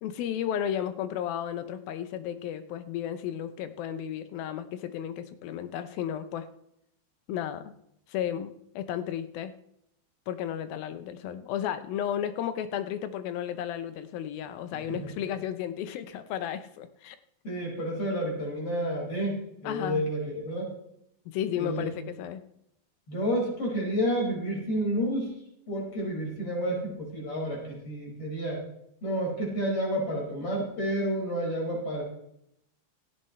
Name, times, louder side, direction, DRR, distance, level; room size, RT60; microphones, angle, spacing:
voice 1, 0.0-6.5 7.3-7.7 8.1-9.5 10.3-17.2 19.6-20.0 21.3-22.4, left 10 dB, 80° left, 10 dB, 2.6 m, -33 dB
voice 2, 14.7-15.1 17.4-20.7 21.6-21.9 23.1-25.3 25.7-28.6 29.0-32.0, equal, 35° left, -2 dB, 6.2 m, -30 dB
17.0 x 15.5 x 3.2 m, 0.78 s
omnidirectional pair, 4.3 m